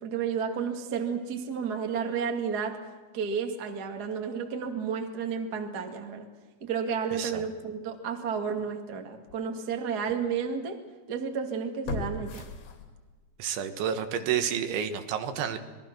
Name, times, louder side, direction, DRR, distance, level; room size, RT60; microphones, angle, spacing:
voice 1, 0.0-2.8 3.1-6.3 6.6-10.8 11.1-12.5, right 6 dB, 45° right, 4 dB, 1.3 m, -32 dB
voice 2, 7.1-7.4 13.4-15.6, right 8 dB, 75° right, 8 dB, 3.7 m, -30 dB
sound 1, 8.6-8.7 9.3-9.4 11.9-13.3 13.7-13.8, left 3 dB, 65° left, 4.8 m, -37 dB
26.5 x 21.0 x 6.1 m, 1.3 s
omnidirectional pair, 5.6 m